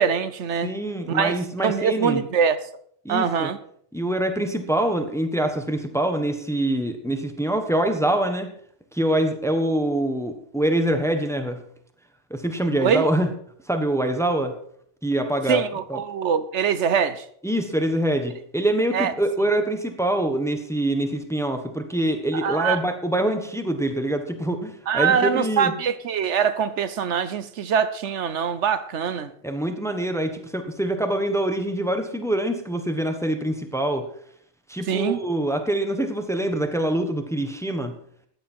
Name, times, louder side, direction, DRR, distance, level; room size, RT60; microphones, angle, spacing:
voice 1, 0.0-0.7 1.1-2.6 3.1-3.6 12.8-13.1 15.5-17.2 18.9-19.1 22.4-22.8 24.9-29.3 34.9-35.2, right 7 dB, 75° right, 12 dB, 1.1 m, -23 dB
voice 2, 0.6-2.2 3.0-3.5 3.9-8.5 8.9-11.6 12.3-13.3 13.7-14.5 15.0-15.6 15.9-16.0 17.4-25.7 29.4-34.0 34.7-37.9, right 1 dB, 5° left, 7 dB, 1.2 m, -24 dB
14.5 x 10.0 x 4.5 m, 0.62 s
omnidirectional pair, 1.2 m